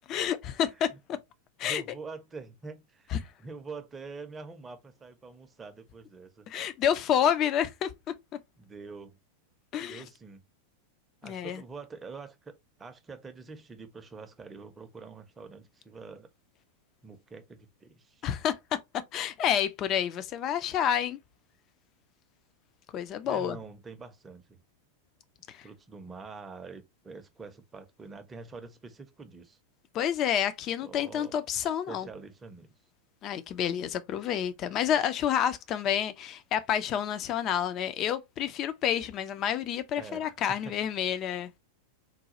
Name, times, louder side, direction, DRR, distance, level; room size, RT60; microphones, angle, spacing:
voice 1, 0.1-0.9 1.6-1.8 3.1-3.2 6.5-7.9 9.7-10.0 11.2-11.6 18.2-18.8 19.1-21.2 22.9-23.6 25.5-25.7 29.9-32.1 33.2-41.5, left 9 dB, 35° left, 0.4 m, -29 dB
voice 2, 1.6-6.5 8.6-9.2 9.8-10.4 11.2-16.3 17.0-18.3 23.2-24.6 25.6-29.6 30.8-31.3 31.9-32.7 40.0-40.8, right 4 dB, 15° right, 0.6 m, -45 dB
3.9 x 2.2 x 2.9 m
figure-of-eight pair, 90°, 0 cm